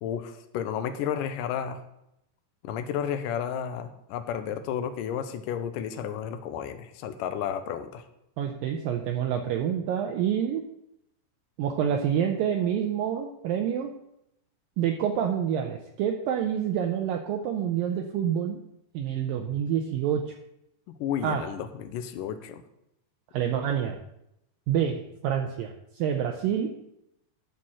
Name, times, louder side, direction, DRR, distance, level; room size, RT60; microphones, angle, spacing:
voice 1, 0.0-1.8 2.6-8.0 21.0-22.6, left 8 dB, 80° left, 8 dB, 1.9 m, -32 dB
voice 2, 8.4-10.6 11.6-13.9 14.8-18.6 18.9-20.2 21.2-21.4 23.3-24.0 24.7-26.8, right 9 dB, 80° right, 3 dB, 2.1 m, -27 dB
12.0 x 4.3 x 7.5 m, 0.82 s
omnidirectional pair, 4.7 m